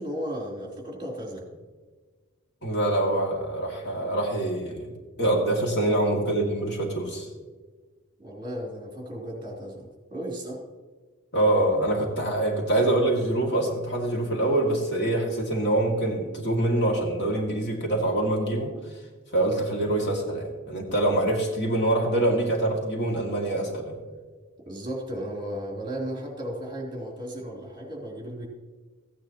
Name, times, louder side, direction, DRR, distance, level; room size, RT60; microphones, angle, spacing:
voice 1, 0.0-1.5 5.8-5.9 8.2-10.6 24.6-28.5, equal, 20° right, -2 dB, 3.1 m, -35 dB
voice 2, 2.6-4.9 5.2-7.3 11.3-18.7 19.3-23.9, right 1 dB, 55° left, 0 dB, 2.2 m, -25 dB
15.0 x 9.8 x 3.0 m, 1.4 s
head